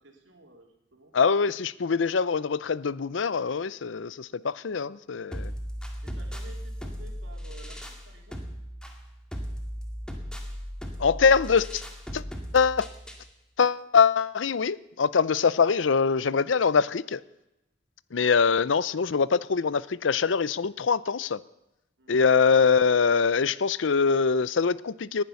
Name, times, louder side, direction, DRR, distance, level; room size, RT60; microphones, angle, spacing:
voice 1, 0.0-1.1 5.8-8.4 22.0-22.3, right 2 dB, 90° right, 2 dB, 3.4 m, -52 dB
voice 2, 1.1-5.5 11.0-11.8 12.1-12.2 12.5-12.9 13.6-17.2 18.1-21.4 22.1-25.2, left 5 dB, 85° left, 19 dB, 0.6 m, -23 dB
sound 1, 5.3-13.3, equal, 5° left, 2.0 m, -37 dB
19.0 x 10.5 x 7.0 m, 0.90 s
head